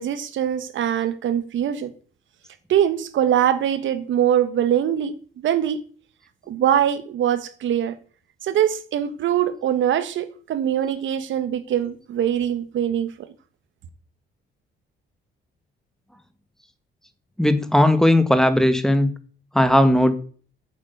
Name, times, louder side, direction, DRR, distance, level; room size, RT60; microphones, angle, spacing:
voice 1, 0.0-1.9 2.7-5.8 6.5-8.0 8.4-13.3, right 10 dB, 75° right, 1.4 m, -22 dB
voice 2, 17.4-19.1 19.5-20.1, left 1 dB, ahead, 1.6 m, -17 dB
8.7 x 7.5 x 8.5 m
cardioid pair, 90°, 20 cm